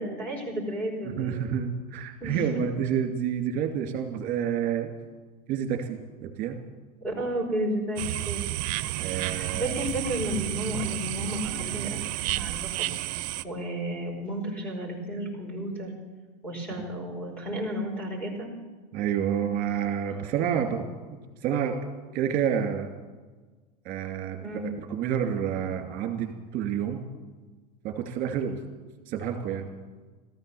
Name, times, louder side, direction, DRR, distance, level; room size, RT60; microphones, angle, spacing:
voice 1, 0.0-1.5 2.2-2.5 7.0-8.5 9.2-12.9 13.4-15.9 16.4-18.5 20.1-20.3 24.4-24.7, equal, 5° left, 0 dB, 5.3 m, -33 dB
voice 2, 1.0-4.9 5.5-6.6 9.0-9.8 18.9-20.9 21.4-21.8 22.1-22.9 23.8-27.0 27.8-28.6 29.1-29.7, right 8 dB, 45° right, 4 dB, 2.7 m, -29 dB
sound 1, 8.0-13.4, right 17 dB, 65° right, 0.6 m, -31 dB
15.0 x 14.0 x 7.0 m, 1.4 s
supercardioid pair, 125°, 21 cm